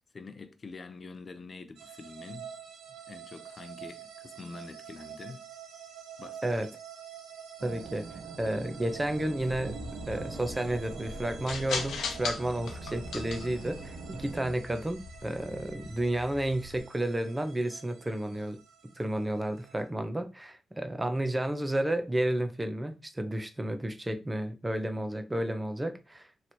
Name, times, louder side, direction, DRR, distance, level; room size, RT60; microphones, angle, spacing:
voice 1, 0.1-2.5 2.9-5.5 6.2-6.7, left 3 dB, 35° left, 0.5 m, -46 dB
sound 1, 1.8-19.9, right 8 dB, 90° right, 0.9 m, -48 dB
voice 2, 7.6-9.8 10.1-18.6 19.0-26.3, right 1 dB, 15° right, 0.6 m, -32 dB
sound 2, 7.6-14.5, right 4 dB, 60° right, 0.6 m, -44 dB
sound 3, 9.4-16.8, left 4 dB, 80° left, 0.7 m, -40 dB
3.1 x 2.9 x 4.2 m
cardioid pair, 110°, 0 cm